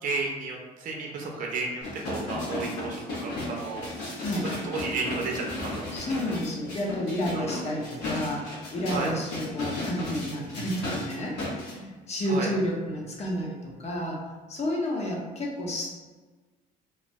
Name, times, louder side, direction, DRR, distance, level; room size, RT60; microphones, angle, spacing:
voice 1, 0.0-3.9 4.6-6.2 7.3-7.5 8.9-9.2 12.3-12.5, right 3 dB, 55° right, -1 dB, 0.6 m, -33 dB
sound 1, 1.8-11.7 12.2-12.3, left 2 dB, 90° left, 1.0 m, -35 dB
voice 2, 4.2-4.5 5.9-14.2 14.5-15.9, equal, 40° left, -1 dB, 0.7 m, -31 dB
3.1 x 2.0 x 2.6 m, 1.3 s
cardioid pair, 110°, 17 cm